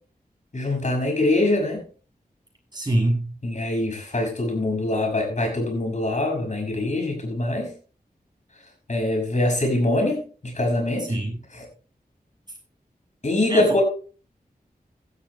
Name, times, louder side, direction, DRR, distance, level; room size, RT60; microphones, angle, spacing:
voice 1, 0.5-1.8 3.4-7.7 8.9-11.1 11.5-11.6 13.2-13.8, left 2 dB, 50° left, 6.1 m, -23 dB
voice 2, 2.7-3.3 11.0-11.4 13.5-13.6, right 1 dB, 25° right, 7.3 m, -24 dB
17.0 x 12.5 x 2.2 m
wide cardioid pair, 60°, 16 cm